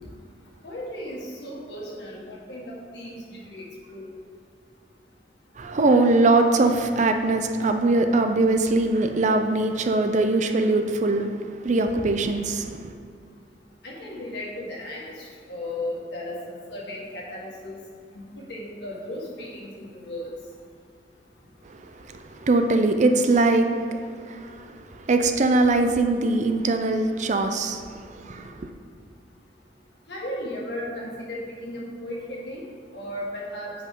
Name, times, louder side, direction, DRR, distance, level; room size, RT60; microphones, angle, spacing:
voice 1, 0.6-3.1 3.5-4.1 13.8-15.1 15.5-17.8 18.1-18.2 18.5-20.3 30.1-32.6 32.9-33.7, left 1 dB, 70° left, -4 dB, 1.7 m, -35 dB
voice 2, 5.6-12.9 21.6-28.7, right 2 dB, 45° right, 6 dB, 0.5 m, -22 dB
8.0 x 5.2 x 3.7 m, 2.1 s
head